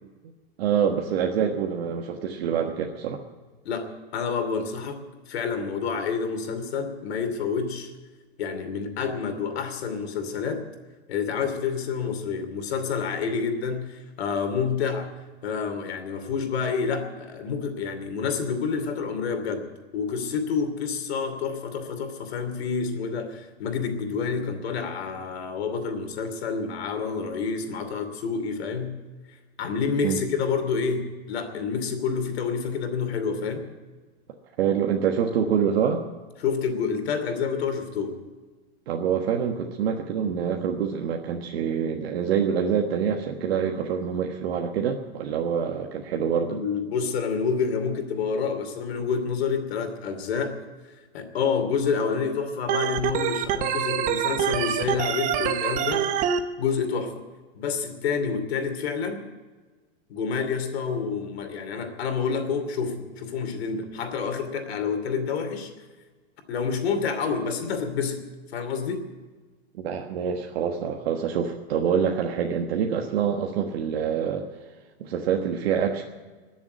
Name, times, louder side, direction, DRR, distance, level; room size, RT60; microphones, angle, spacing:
voice 1, 0.6-3.2 30.0-30.2 34.6-36.0 38.9-46.6 69.7-74.5 75.0-76.0, right 7 dB, 70° right, 2 dB, 1.4 m, -26 dB
voice 2, 3.6-5.0 5.3-7.9 8.4-10.6 11.1-15.1 15.4-19.7 19.9-28.9 29.6-33.6 36.4-38.1 46.5-50.6 51.1-56.1 56.6-57.2 57.5-59.2 60.1-65.7 66.5-68.2 68.5-69.0, left 5 dB, 70° left, 6 dB, 2.8 m, -28 dB
Organ, 52.7-56.4, right 9 dB, 25° right, 0.7 m, -25 dB
21.0 x 7.2 x 9.3 m, 1.4 s
supercardioid pair, 155°, 32 cm